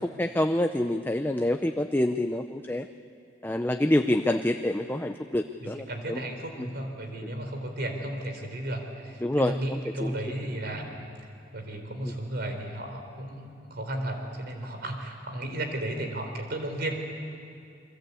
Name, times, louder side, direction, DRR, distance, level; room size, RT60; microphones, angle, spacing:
voice 1, 0.0-2.9 3.4-6.2 6.6-6.7 7.2-7.3 9.2-10.1 12.0-12.1, left 1 dB, 10° left, 7 dB, 0.6 m, -27 dB
voice 2, 5.6-11.0 11.5-16.9, right 1 dB, 60° right, 4 dB, 4.0 m, -34 dB
29.5 x 23.0 x 8.4 m, 2.4 s
head